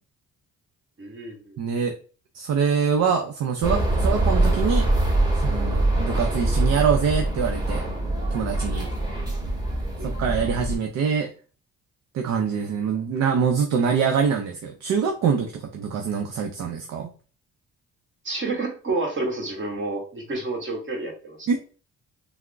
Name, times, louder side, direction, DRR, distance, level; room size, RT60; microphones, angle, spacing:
voice 1, 1.0-1.6 10.0-10.1 18.2-21.5, right 2 dB, 40° right, 0 dB, 1.5 m, -29 dB
voice 2, 1.6-2.0 2.3-4.9 5.4-7.8 8.3-8.9 10.0-11.3 12.1-17.1 21.5-21.6, right 6 dB, 60° right, 4 dB, 0.6 m, -24 dB
sound 1, 3.6-10.8, right 1 dB, 15° right, 1.2 m, -23 dB
3.5 x 2.0 x 3.4 m, 0.37 s
cardioid pair, 90°, 30 cm